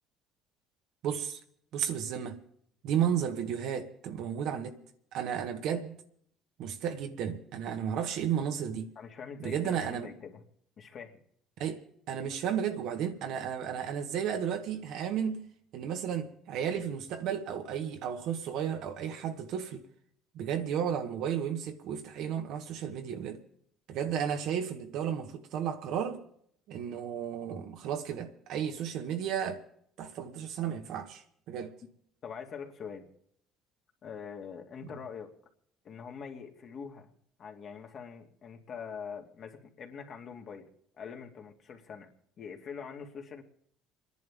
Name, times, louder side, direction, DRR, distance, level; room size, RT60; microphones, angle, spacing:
voice 1, 1.0-1.4 1.7-2.4 2.8-4.8 5.1-6.0 6.6-8.9 9.4-10.1 11.6-15.5 15.7-19.9 20.3-23.4 23.9-26.2 26.7-29.6 30.0-31.7, right 8 dB, 70° right, 1.5 m, -33 dB
voice 2, 9.0-10.4 10.8-11.2 32.2-33.1 34.0-35.3 35.8-37.1 37.4-40.7 41.0-42.1 42.4-43.4, left 6 dB, 50° left, 2.3 m, -44 dB
29.0 x 10.5 x 3.6 m
supercardioid pair, 85°, 0 cm